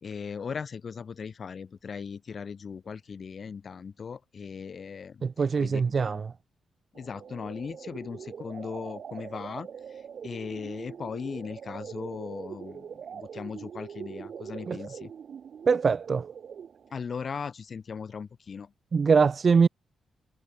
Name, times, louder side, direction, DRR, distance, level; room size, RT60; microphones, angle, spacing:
voice 1, 0.0-6.2 6.9-15.1 16.9-18.7, left 6 dB, 55° left, 2.5 m, -38 dB
voice 2, 5.2-6.2 14.7-14.8 15.7-16.2 18.9-19.7, right 5 dB, 50° right, 0.4 m, -22 dB
sound 1, 7.0-16.9, right 7 dB, 65° right, 4.5 m, -42 dB
cardioid pair, 65°, 0 cm